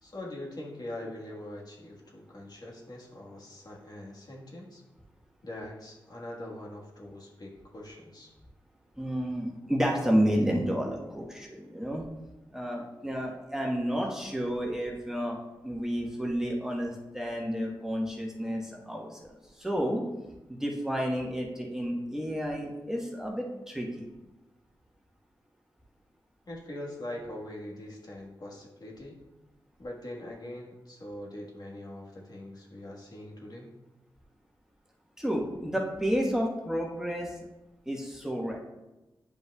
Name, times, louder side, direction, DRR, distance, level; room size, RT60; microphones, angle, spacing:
voice 1, 0.0-4.8 5.4-8.3 26.5-29.2 29.8-33.7, left 1 dB, 50° left, -2 dB, 1.5 m, -42 dB
voice 2, 9.0-12.0 12.5-15.4 15.6-19.3 19.6-20.0 20.5-23.9 35.2-37.3 37.9-38.6, equal, 5° right, -1 dB, 1.2 m, -30 dB
9.4 x 5.3 x 2.3 m, 1.0 s
cardioid pair, 60°, 9 cm